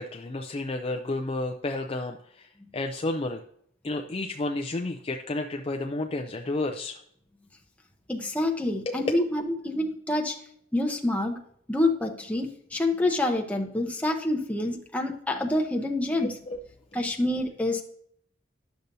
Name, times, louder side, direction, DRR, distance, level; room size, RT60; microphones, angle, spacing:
voice 1, 0.0-3.4 3.8-7.0 8.9-9.1 16.2-16.6, left 2 dB, 30° left, 4 dB, 0.4 m, -31 dB
voice 2, 8.1-10.4 10.7-11.4 11.7-16.4 16.9-17.8, left 1 dB, 5° left, 1 dB, 0.8 m, -27 dB
10.5 x 6.7 x 2.7 m, 0.67 s
head